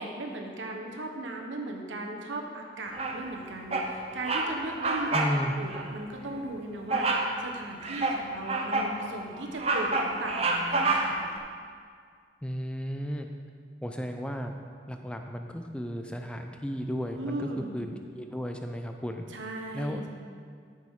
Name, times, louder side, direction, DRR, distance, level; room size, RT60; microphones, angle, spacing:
voice 1, 0.0-7.1 7.4-11.2 17.2-17.7 19.3-20.1, right 2 dB, 85° right, 2 dB, 1.1 m, -37 dB
Bird vocalization bird call bird song, 3.0-3.4 3.7-3.9 4.2-4.5 4.8-5.4 5.7-5.9 6.9-7.3 7.8-8.9 9.4-11.3, right 3 dB, 35° right, 0.7 m, -28 dB
voice 2, 5.1-5.5 12.4-13.3 13.8-14.5 14.9-19.2 19.7-20.1, equal, 5° left, 5 dB, 0.5 m, -34 dB
13.0 x 6.1 x 3.7 m, 2.1 s
head